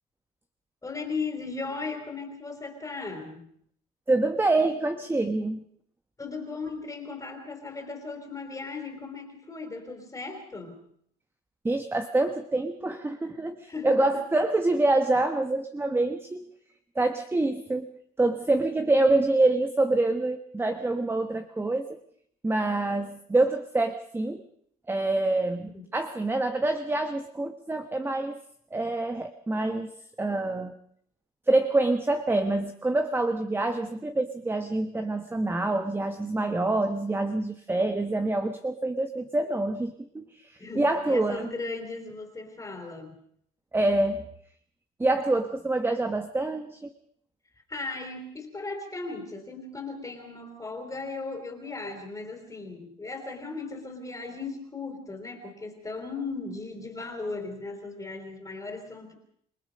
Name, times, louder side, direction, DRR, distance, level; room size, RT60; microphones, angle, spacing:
voice 1, 0.8-3.5 6.2-10.8 13.7-14.2 25.7-25.8 40.6-43.1 47.7-59.1, left 3 dB, 20° left, 3 dB, 3.8 m, -37 dB
voice 2, 4.1-5.6 11.6-16.5 16.9-17.9 18.2-22.0 22.4-24.4 24.9-28.4 28.7-29.9 30.2-30.7 31.5-41.5 43.7-44.3 45.0-46.9, right 2 dB, 15° right, 7 dB, 1.2 m, -26 dB
27.5 x 19.0 x 5.3 m, 0.65 s
cardioid pair, 110°, 17 cm